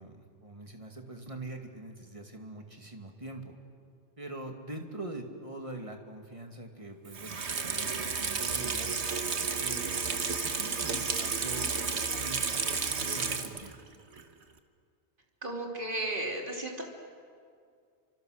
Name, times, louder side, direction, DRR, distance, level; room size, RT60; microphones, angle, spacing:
voice 1, 0.0-3.5 4.2-8.9 9.5-10.1 10.4-11.7 12.1-13.7, right 2 dB, 30° right, 3 dB, 2.5 m, -43 dB
Water tap faucet / Sink (filling or washing), 7.1-13.8 14.2-14.3, right 5 dB, 75° right, 1.7 m, -32 dB
voice 2, 15.4-16.8, right 1 dB, 50° right, 0 dB, 3.6 m, -34 dB
30.0 x 25.5 x 6.6 m, 2.3 s
omnidirectional pair, 1.1 m